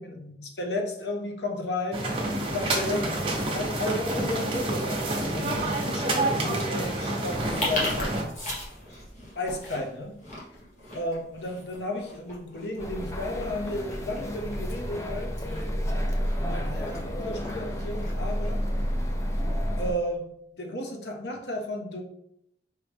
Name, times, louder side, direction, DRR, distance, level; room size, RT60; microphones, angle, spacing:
voice 1, 0.0-2.1 2.5-3.1 3.5-8.2 9.3-10.1 10.9-15.3 16.4-18.6 19.8-22.0, left 1 dB, 70° left, 2 dB, 0.8 m, -33 dB
sound 1, 1.9-8.2, right 2 dB, 30° right, 0.8 m, -28 dB
sound 2, 7.3-19.4, left 1 dB, 40° left, 1.4 m, -39 dB
sound 3, 12.8-19.9, equal, 15° left, 0.4 m, -30 dB
4.8 x 3.0 x 3.4 m, 0.77 s
head